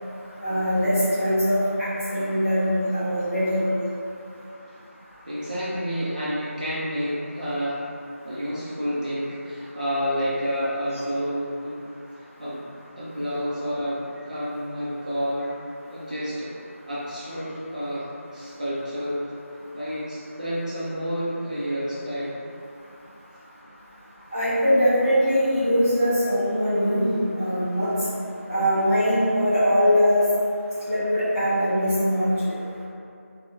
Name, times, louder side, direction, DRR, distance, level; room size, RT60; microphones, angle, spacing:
voice 1, 0.4-3.7 24.3-27.9 28.5-30.2 30.8-32.3, equal, 15° left, -19 dB, 1.3 m, -22 dB
voice 2, 5.3-7.9 8.2-11.8 12.1-12.6 13.0-14.0 14.3-15.5 15.9-19.2 19.7-22.4, equal, 35° right, -10 dB, 0.4 m, -29 dB
3.8 x 2.0 x 2.6 m, 2.5 s
figure-of-eight pair, 170°, 8 cm